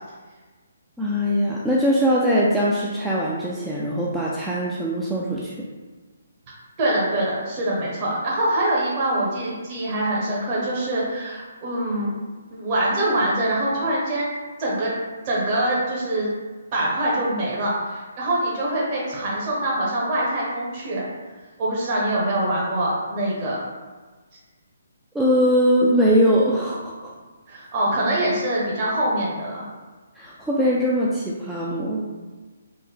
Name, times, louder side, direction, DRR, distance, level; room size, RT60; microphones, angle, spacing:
voice 1, 1.0-5.5 25.1-27.1 30.2-32.0, equal, 5° right, -7 dB, 0.3 m, -21 dB
voice 2, 6.8-12.1 12.5-14.3 14.6-14.9 15.2-16.3 16.7-21.0 21.6-23.6 27.5-29.6, right 1 dB, 35° right, -6 dB, 0.9 m, -24 dB
3.3 x 2.1 x 3.6 m, 1.3 s
hypercardioid pair, 150°, 0 cm